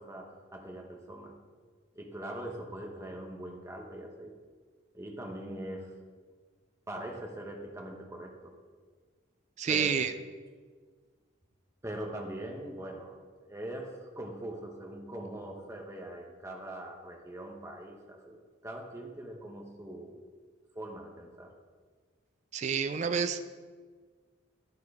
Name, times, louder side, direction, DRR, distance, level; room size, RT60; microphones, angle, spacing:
voice 1, 0.0-1.4 1.9-4.4 4.9-5.9 6.9-8.5 9.7-10.0 11.8-18.4 18.6-20.2 20.7-21.5, right 1 dB, 15° right, 1 dB, 0.9 m, -42 dB
voice 2, 9.6-10.1 22.5-23.5, right 6 dB, 35° right, 10 dB, 0.3 m, -29 dB
11.0 x 4.6 x 4.8 m, 1.5 s
head